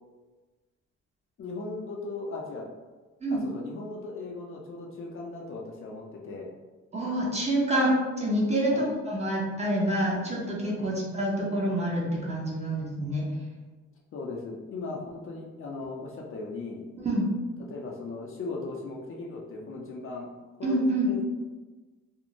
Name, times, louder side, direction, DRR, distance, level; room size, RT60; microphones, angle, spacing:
voice 1, 1.4-2.7 3.4-6.5 8.7-8.8 10.8-10.9 14.1-16.8 17.7-20.3 20.6-21.2, left 3 dB, 45° left, -2 dB, 0.5 m, -38 dB
voice 2, 6.9-13.3 17.0-17.3 20.6-21.1, right 1 dB, 20° right, -4 dB, 0.7 m, -27 dB
2.5 x 2.0 x 2.9 m, 1.3 s
cardioid pair, 90°, 30 cm